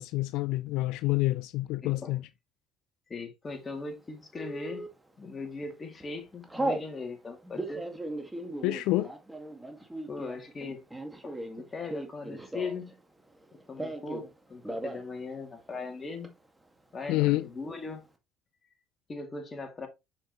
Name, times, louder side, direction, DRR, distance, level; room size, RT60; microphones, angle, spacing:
voice 1, 0.0-2.3 8.6-9.1 17.1-17.5, left 18 dB, 75° left, 0.3 m, -28 dB
voice 2, 1.8-2.2 3.1-4.9 5.2-7.9 10.1-10.8 11.2-11.4 11.7-13.0 13.5-16.3 16.9-18.1 19.1-19.9, left 3 dB, 30° left, 2.4 m, -39 dB
Telephone, 4.4-4.9 5.5-5.7 6.0-6.9 7.4-12.9 13.2-14.3 14.6-15.0 15.3-15.4 15.7-16.3, right 1 dB, 10° right, 1.8 m, -37 dB
6.4 x 6.0 x 3.0 m
supercardioid pair, 85°, 0 cm